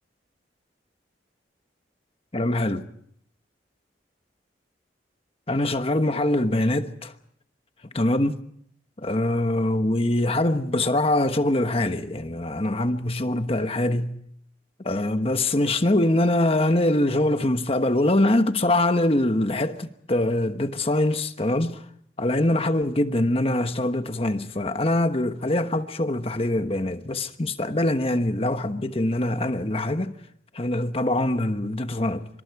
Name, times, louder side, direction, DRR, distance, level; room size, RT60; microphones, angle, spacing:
voice 1, 2.3-2.8 5.5-7.1 7.9-8.4 9.0-14.2 14.8-21.8 22.2-30.2 30.5-32.3, left 1 dB, 30° left, 1.2 m, -23 dB
26.5 x 25.5 x 4.8 m
head